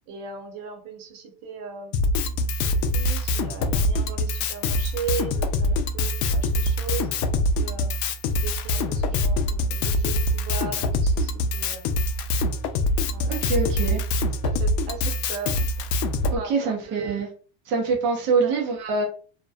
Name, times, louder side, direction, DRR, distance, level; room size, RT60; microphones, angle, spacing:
voice 1, 0.1-2.1 2.7-7.9 8.4-12.1 13.1-14.0 14.4-15.7 16.4-17.3 18.4-18.6, right 5 dB, 60° right, 0.8 m, -37 dB
Drum kit, 1.9-16.4, left 1 dB, 85° left, 0.6 m, -24 dB
voice 2, 13.3-14.0 16.3-17.3 17.7-19.0, right 4 dB, 25° right, 0.4 m, -24 dB
2.7 x 2.1 x 2.3 m
supercardioid pair, 150°, 48 cm